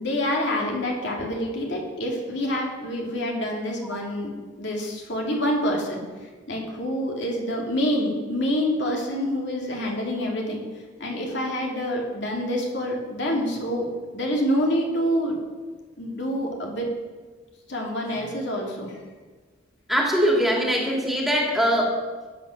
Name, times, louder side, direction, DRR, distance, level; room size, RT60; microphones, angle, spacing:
voice 1, 0.0-4.3 4.6-6.0 6.5-10.6 11.0-15.4 16.0-16.9 17.7-19.0, equal, 65° left, 0 dB, 2.8 m, -27 dB
voice 2, 19.9-22.0, equal, ahead, -1 dB, 2.5 m, -22 dB
15.0 x 9.0 x 6.6 m, 1.4 s
head